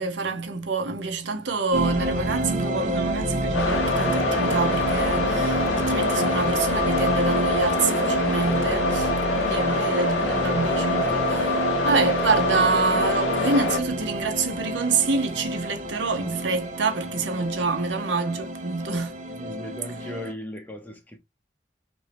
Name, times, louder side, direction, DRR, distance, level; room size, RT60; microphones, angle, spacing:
voice 1, 0.0-19.2, right 4 dB, 85° right, 0.7 m, -27 dB
sound 1, 1.7-20.3, right 1 dB, 40° right, 0.6 m, -29 dB
sound 2, 3.5-13.8, left 2 dB, 90° left, 0.6 m, -25 dB
voice 2, 19.3-21.2, left 1 dB, 10° left, 0.5 m, -37 dB
3.0 x 2.6 x 3.3 m
head